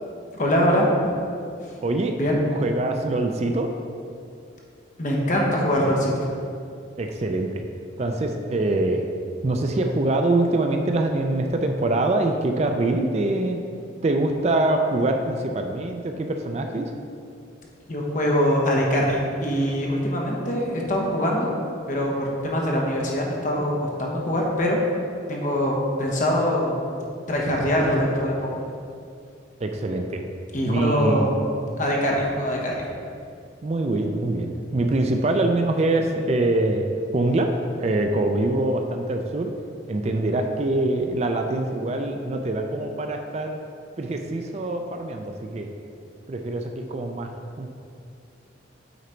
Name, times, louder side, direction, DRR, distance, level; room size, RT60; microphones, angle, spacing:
voice 1, 0.3-0.9 1.6-1.7 2.2-2.4 5.0-6.3 17.9-21.5 21.9-24.8 25.3-26.8 27.3-28.5 30.5-31.4 31.8-32.8, equal, 40° left, -2 dB, 1.1 m, -23 dB
voice 2, 1.8-2.2 2.4-3.7 7.0-7.5 8.0-9.1 9.4-13.6 14.0-16.9 29.6-30.2 30.6-31.4 33.6-36.9 37.1-37.5 37.8-39.5 39.9-43.6 44.0-45.7 46.3-47.7, right 2 dB, 35° right, 4 dB, 0.4 m, -24 dB
8.1 x 3.9 x 4.4 m, 2.4 s
head